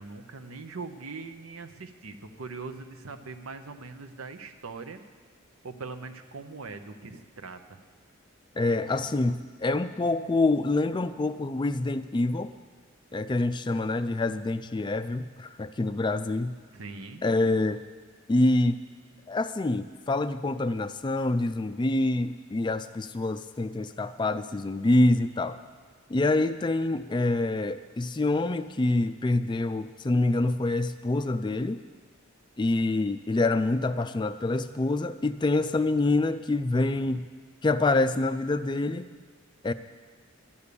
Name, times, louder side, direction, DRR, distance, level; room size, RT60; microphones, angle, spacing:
voice 1, 0.0-5.0 5.6-7.8 16.7-17.2, right 4 dB, 85° right, 7 dB, 0.9 m, -41 dB
voice 2, 8.6-12.5 13.1-16.6 17.2-17.8 18.3-18.8 19.3-25.6 26.1-31.8 32.6-37.3 37.6-39.1 39.6-39.7, left 2 dB, 20° left, 11 dB, 0.3 m, -26 dB
12.5 x 9.7 x 6.9 m, 1.5 s
head